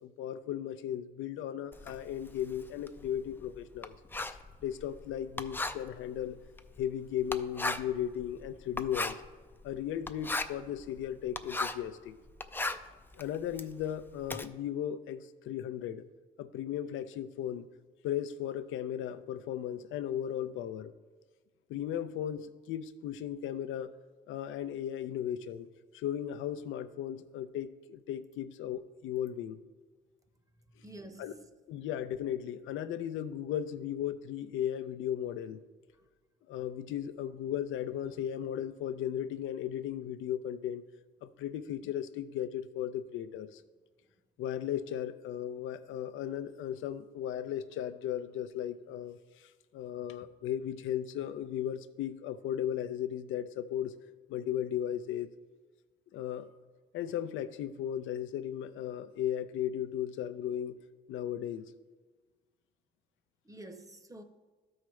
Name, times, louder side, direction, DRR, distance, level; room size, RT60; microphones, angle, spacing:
voice 1, 0.0-3.9 4.6-6.4 6.8-9.2 9.6-12.1 13.1-16.0 16.4-17.7 18.0-20.9 21.7-23.9 24.3-25.7 25.9-29.6 31.2-31.3 31.7-35.6 36.5-40.8 41.2-43.6 44.4-53.9 54.3-55.3 56.1-56.5 56.9-60.8 61.1-61.7, left 10 dB, 85° left, 0.5 m, -36 dB
Writing, 1.7-11.9 12.3-14.5, left 2 dB, 10° left, 0.4 m, -38 dB
voice 2, 30.6-31.5 35.9-36.0 44.0-44.3 63.4-64.2, right 1 dB, 15° right, 0.8 m, -50 dB
13.0 x 4.8 x 3.2 m
cardioid pair, 90°, 20 cm